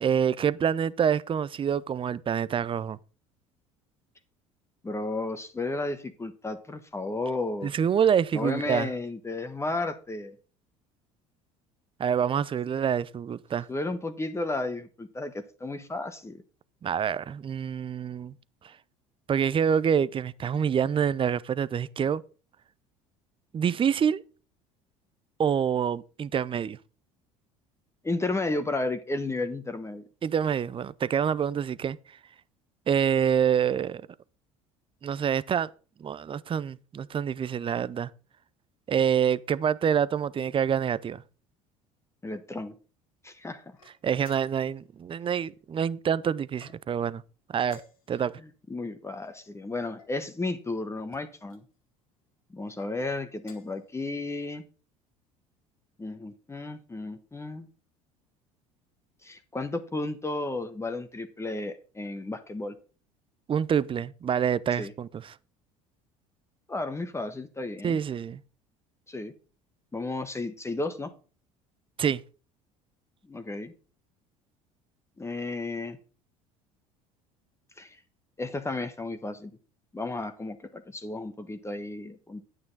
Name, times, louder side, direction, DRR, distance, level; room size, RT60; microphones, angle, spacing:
voice 1, 0.0-3.0 7.6-8.9 12.0-13.7 16.8-18.3 18.6-18.7 19.3-22.2 23.5-24.2 25.4-26.8 30.2-32.0 32.9-34.0 35.0-35.7 36.0-38.1 38.9-41.2 44.0-47.2 47.5-47.8 48.1-48.3 63.5-65.4 67.8-68.4 72.0-72.2, right 8 dB, 30° right, 0.6 m, -26 dB
voice 2, 4.8-7.7 8.3-10.3 13.7-16.4 28.0-30.1 42.2-42.7 43.2-43.6 48.4-51.6 52.5-54.6 56.0-57.7 59.2-62.8 64.8-64.9 66.7-68.0 69.1-69.3 69.9-71.1 73.3-73.7 75.2-76.0 77.8-78.0 78.4-79.5 79.9-82.4, left 2 dB, 15° left, 1.2 m, -33 dB
sound 1, 43.7-44.8 46.5-47.1 47.6-48.3 49.2-50.2 51.1-51.6 52.6-52.9 53.4-53.8, left 4 dB, 90° left, 2.0 m, -55 dB
9.4 x 8.7 x 4.1 m
hypercardioid pair, 70°, 17 cm